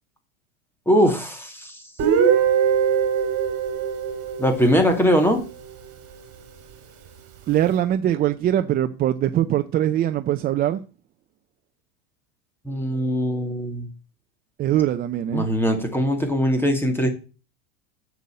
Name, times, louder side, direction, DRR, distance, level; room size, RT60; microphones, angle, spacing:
voice 1, 0.9-1.8 4.4-5.4 12.6-13.9 15.3-17.1, equal, 5° left, 2.4 m, -21 dB
Guitar, 2.0-5.8, right 7 dB, 40° right, 4.1 m, -22 dB
voice 2, 7.5-10.8 14.6-15.5, right 12 dB, 25° right, 0.5 m, -22 dB
8.1 x 7.1 x 7.6 m
supercardioid pair, 130°, 37 cm